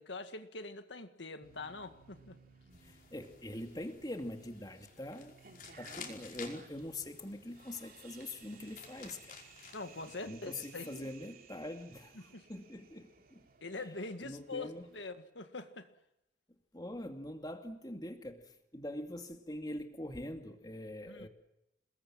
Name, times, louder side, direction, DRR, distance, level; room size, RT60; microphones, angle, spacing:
voice 1, 0.0-2.4 9.7-11.1 12.2-12.5 13.6-15.9 21.1-21.3, left 3 dB, 70° left, 8 dB, 1.9 m, -44 dB
sound 1, 1.4-15.0, right 5 dB, 50° right, 3.4 m, -59 dB
sound 2, 2.7-10.3, left 5 dB, 45° left, 5.3 m, -53 dB
voice 2, 2.8-5.4 5.8-9.4 10.3-13.5 13.7-13.9 14.2-14.9 16.7-21.3, left 1 dB, 20° left, 5 dB, 2.4 m, -44 dB
29.0 x 21.0 x 7.6 m, 0.85 s
head